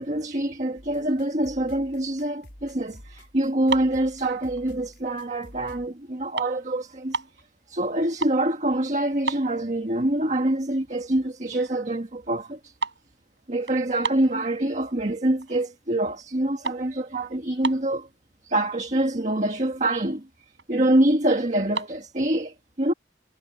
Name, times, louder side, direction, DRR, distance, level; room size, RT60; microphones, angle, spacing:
voice 1, 0.0-7.2 7.7-12.7 13.5-18.1 18.4-20.3 20.7-22.9, right 1 dB, 40° right, 1.6 m, -25 dB
sound 1, 0.8-5.9, equal, 75° left, 4.4 m, -48 dB
sound 2, 3.6-4.9 5.4-5.7 6.0-7.4 7.9-8.5 8.8-8.9 9.2-10.1 10.5-10.6 11.2-11.3 11.5-11.9 12.1-14.9 15.4-15.8 16.1-18.1 18.8-18.9 19.1-19.3 19.8-19.9 20.1-20.8 21.5-21.9, right 4 dB, 85° right, 7.9 m, -34 dB
head